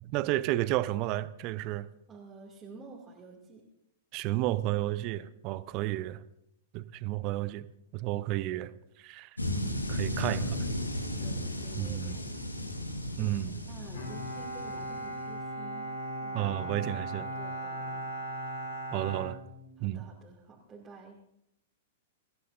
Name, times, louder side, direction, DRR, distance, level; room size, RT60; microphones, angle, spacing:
voice 1, 0.0-1.9 4.1-6.2 6.7-7.7 7.9-8.7 9.0-9.3 9.9-10.7 11.8-12.2 13.2-13.5 16.3-17.3 18.9-19.4 19.8-20.0, right 16 dB, 40° right, 16 dB, 0.7 m, -32 dB
voice 2, 2.1-3.7 8.5-8.8 11.0-12.4 13.2-18.0 19.8-21.2, right 4 dB, 15° right, -4 dB, 2.7 m, -51 dB
sound 1, 9.4-15.3, left 1 dB, 85° left, 1.6 m, -35 dB
Bowed string instrument, 13.9-20.1, right 1 dB, 65° left, 4.0 m, -38 dB
26.0 x 14.5 x 2.7 m, 0.80 s
figure-of-eight pair, 100°, 0 cm